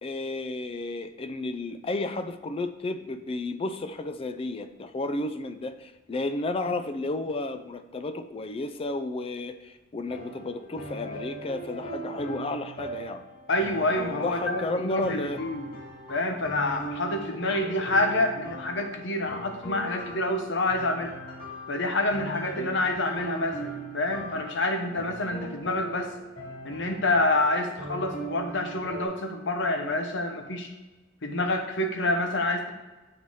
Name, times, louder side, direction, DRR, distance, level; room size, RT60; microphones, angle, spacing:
voice 1, 0.0-13.2 14.2-15.4 22.6-22.8, left 2 dB, 30° left, 10 dB, 0.4 m, -32 dB
sound 1, 10.1-29.0, right 1 dB, 50° left, 2.3 m, -40 dB
voice 2, 13.5-15.7 16.1-21.1 21.7-26.1 26.6-30.7 31.2-32.7, left 2 dB, 65° left, 5 dB, 0.9 m, -27 dB
7.7 x 4.1 x 4.7 m, 1.1 s
head